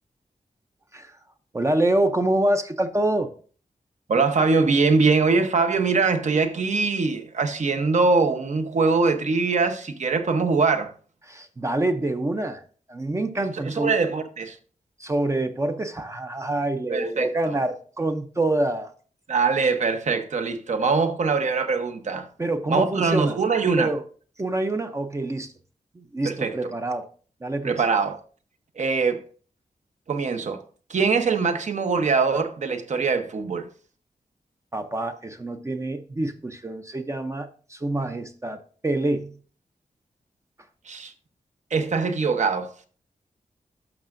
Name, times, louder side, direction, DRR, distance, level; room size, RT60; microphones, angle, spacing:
voice 1, 1.5-3.3 11.2-12.6 12.9-14.0 15.0-18.9 22.4-23.4 23.8-24.0 24.4-25.5 25.9-27.1 27.4-27.8 34.7-39.4, right 1 dB, 20° right, 0.5 m, -26 dB
voice 2, 4.1-10.9 13.7-14.6 16.9-17.3 19.3-22.3 22.7-23.9 26.2-26.5 27.6-28.2 28.8-29.2 30.1-30.6 30.9-33.7 40.9-41.1 41.7-42.7, right 4 dB, 60° right, 0.9 m, -22 dB
12.0 x 6.5 x 2.5 m
wide cardioid pair, 170°, 14 cm